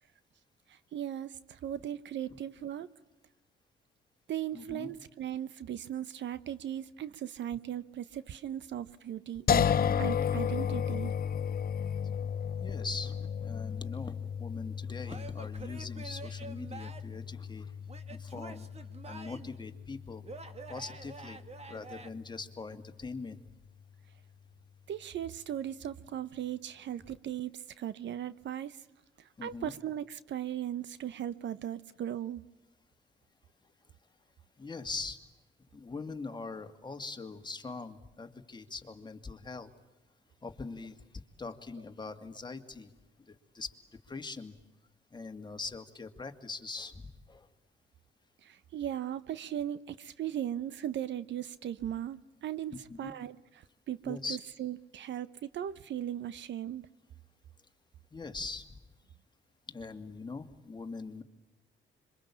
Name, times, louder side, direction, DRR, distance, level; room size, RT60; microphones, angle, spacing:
voice 1, 0.7-2.9 4.3-9.7 10.0-11.1 24.9-28.8 29.2-32.4 48.4-56.9, right 11 dB, 65° right, 1.0 m, -38 dB
voice 2, 4.5-4.9 12.6-17.8 18.1-18.7 19.1-20.2 20.7-21.4 21.7-23.4 29.4-29.7 34.6-35.2 35.7-39.7 40.4-41.0 41.4-42.9 43.3-43.7 44.1-44.5 45.1-47.5 52.9-53.1 54.0-54.4 58.1-58.8 59.7-61.2, left 4 dB, 20° left, 2.4 m, -42 dB
sound 1, 9.5-22.5, left 8 dB, 50° left, 1.0 m, -34 dB
Male speech man speaking / Yell / Laughter, 15.0-17.2 17.9-19.6 20.2-22.1, right 3 dB, 30° right, 2.0 m, -47 dB
26.5 x 24.0 x 8.6 m
cardioid pair, 90°, 20 cm